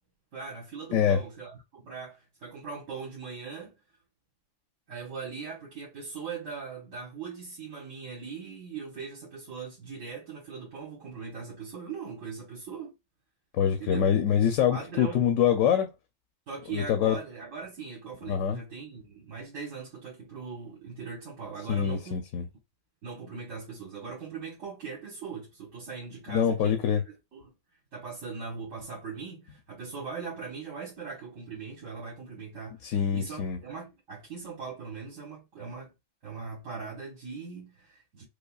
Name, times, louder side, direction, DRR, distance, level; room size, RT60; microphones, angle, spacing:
voice 1, 0.3-3.7 4.9-12.9 13.8-14.1 14.7-15.2 16.5-22.2 23.0-27.5 27.9-35.9 36.2-38.2, right 5 dB, 75° right, 1.5 m, -40 dB
voice 2, 13.5-15.9 16.7-17.2 18.3-18.6 21.7-22.5 26.3-27.0 32.8-33.6, left 8 dB, 80° left, 1.0 m, -25 dB
5.1 x 2.1 x 2.3 m
omnidirectional pair, 1.3 m